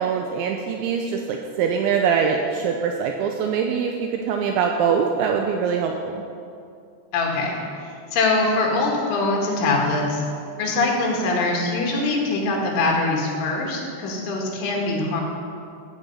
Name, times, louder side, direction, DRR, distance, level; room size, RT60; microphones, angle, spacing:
voice 1, 0.0-6.2, right 6 dB, 85° right, 3 dB, 2.6 m, -23 dB
voice 2, 7.1-7.5 8.1-10.2 10.6-15.2, left 3 dB, 70° left, -1 dB, 4.4 m, -23 dB
14.0 x 9.1 x 5.6 m, 2.5 s
omnidirectional pair, 6.0 m